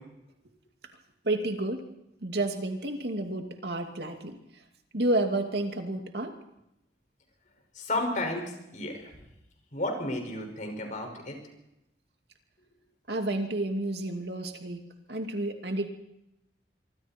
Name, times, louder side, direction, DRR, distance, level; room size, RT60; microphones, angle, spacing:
voice 1, 1.2-1.8 2.2-4.4 4.9-6.3 13.1-14.8 15.1-15.9, right 1 dB, 65° right, 4 dB, 2.6 m, -30 dB
voice 2, 7.7-9.1 9.7-11.4, left 1 dB, 45° left, 3 dB, 5.9 m, -32 dB
25.5 x 25.0 x 4.5 m, 0.85 s
head